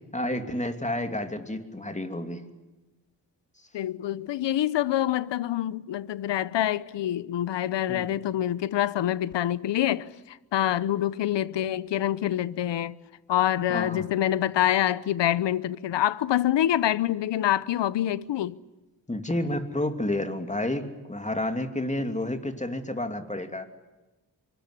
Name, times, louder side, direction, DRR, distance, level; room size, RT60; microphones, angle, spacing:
voice 1, 0.0-2.5 7.9-8.1 13.7-14.1 19.1-23.7, left 1 dB, 15° left, 2.8 m, -30 dB
voice 2, 3.7-12.9 13.3-18.6, left 12 dB, 80° left, 0.9 m, -26 dB
24.5 x 21.0 x 9.8 m
cardioid pair, 60°, 42 cm